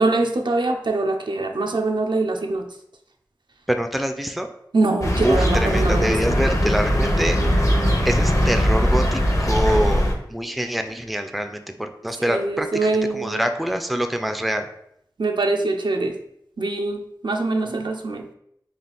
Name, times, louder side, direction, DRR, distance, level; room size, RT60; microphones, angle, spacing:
voice 1, 0.0-2.7 4.7-6.4 12.1-13.4 15.2-16.2 16.6-18.2, right 3 dB, 75° right, 3 dB, 0.4 m, -23 dB
voice 2, 3.7-4.5 5.2-7.4 8.0-10.0 10.3-14.7, equal, ahead, 7 dB, 0.3 m, -25 dB
sound 1, 5.0-10.1, equal, 40° left, 0.6 m, -20 dB
3.4 x 2.4 x 3.8 m, 0.74 s
wide cardioid pair, 45°, 8 cm